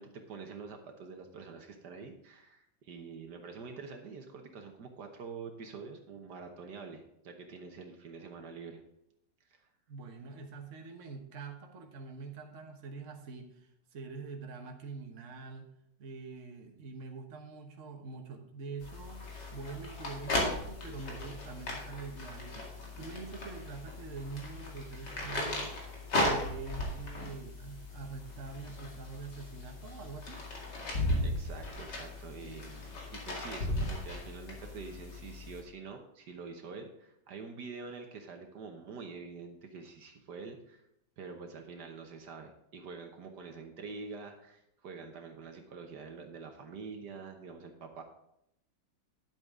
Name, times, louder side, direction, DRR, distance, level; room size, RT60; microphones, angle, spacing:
voice 1, 0.0-8.8 9.5-9.7 31.2-40.9 41.2-48.0, right 4 dB, 70° right, 4 dB, 1.6 m, -46 dB
voice 2, 9.9-15.7 16.0-19.2 19.5-25.7 26.2-30.4, right 4 dB, 45° right, 3 dB, 1.4 m, -45 dB
sound 1, 18.8-35.6, left 1 dB, 75° left, 2.7 m, -37 dB
10.5 x 8.1 x 3.7 m, 0.80 s
omnidirectional pair, 1.9 m